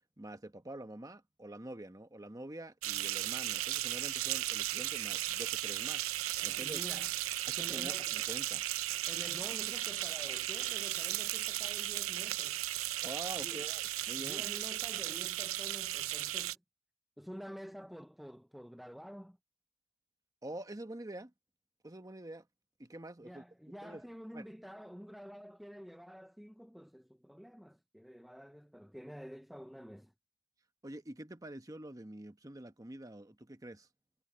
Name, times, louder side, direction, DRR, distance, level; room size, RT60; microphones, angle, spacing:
voice 1, 0.2-6.1 6.4-6.8 7.5-8.7 13.0-14.5 20.4-21.3 21.8-22.5 22.8-23.4 23.8-24.0 24.3-24.5 30.8-33.9, right 1 dB, 15° right, 1.0 m, -46 dB
sound 1, 2.8-16.5, right 14 dB, 85° right, 0.6 m, -36 dB
voice 2, 6.4-7.1 7.6-8.3 9.1-12.6 13.4-13.7 14.2-16.6 17.2-19.4 23.2-30.1, equal, ahead, 0.4 m, -49 dB
head